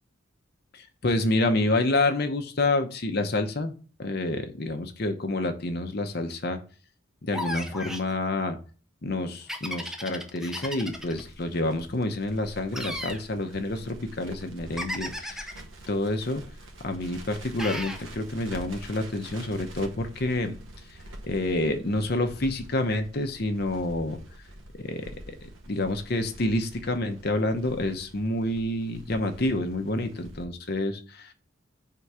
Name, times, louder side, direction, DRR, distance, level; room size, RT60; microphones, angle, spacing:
voice 1, 0.7-3.7 4.0-6.6 7.2-8.6 9.0-15.5 15.9-16.4 16.8-20.6 21.2-24.2 24.7-25.4 25.7-31.3, left 2 dB, 50° left, 7 dB, 0.8 m, -28 dB
sound 1, 7.3-8.1 9.5-11.2 12.7-13.2 14.8-15.6 17.6-18.0, left 1 dB, ahead, 0.5 m, -35 dB
Crackle, 10.6-30.5, right 1 dB, 75° right, 1.0 m, -46 dB
4.7 x 3.8 x 5.6 m, 0.38 s
head